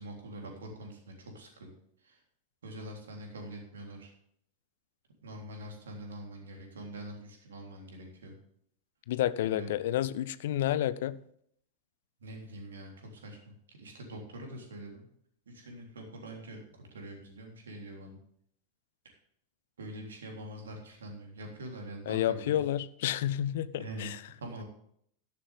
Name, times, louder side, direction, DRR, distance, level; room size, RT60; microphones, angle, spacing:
voice 1, 0.0-1.7 2.0-2.2 2.6-4.1 5.2-8.3 9.4-9.7 12.2-13.4 13.7-15.1 15.5-18.2 19.8-22.6 23.8-24.1 24.4-24.6, right 1 dB, 65° right, 3.5 m, -44 dB
voice 2, 9.1-11.2 22.1-24.2, left 12 dB, 55° left, 0.6 m, -30 dB
12.5 x 11.5 x 3.6 m
figure-of-eight pair, 90°, 0 cm